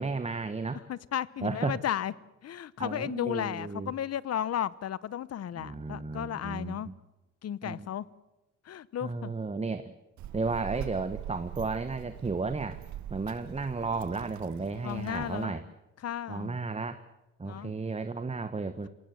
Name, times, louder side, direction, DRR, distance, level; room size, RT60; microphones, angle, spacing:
voice 1, 0.0-0.8 1.4-1.8 2.8-3.9 5.5-6.9 7.6-7.9 9.0-9.9 10.3-12.8 13.1-15.6 16.3-17.0 17.4-18.9, right 4 dB, 20° right, 1.2 m, -33 dB
voice 2, 0.9-2.1 2.4-6.9 7.4-8.1 8.6-9.3 14.8-15.6 16.0-16.6 17.4-17.7, left 10 dB, 55° left, 0.9 m, -34 dB
Child speech kid speaking, 10.2-15.4, right 12 dB, 70° right, 0.9 m, -42 dB
27.5 x 17.5 x 7.8 m
cardioid pair, 90°, 30 cm